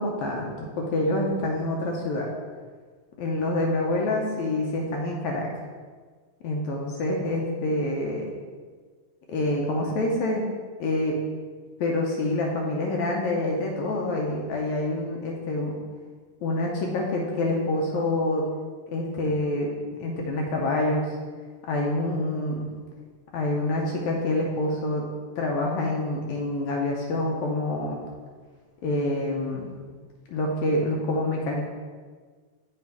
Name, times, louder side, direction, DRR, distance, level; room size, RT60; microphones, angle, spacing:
voice 1, 0.0-2.3 3.2-5.5 6.4-8.2 9.3-10.5 10.8-11.2 11.8-15.8 16.4-18.4 18.9-19.7 20.0-21.1 21.6-22.7 23.3-25.1 25.4-28.0 28.8-29.7 30.3-31.7, left 2 dB, 75° left, -1 dB, 1.9 m, -26 dB
7.4 x 3.4 x 4.6 m, 1.5 s
omnidirectional pair, 3.4 m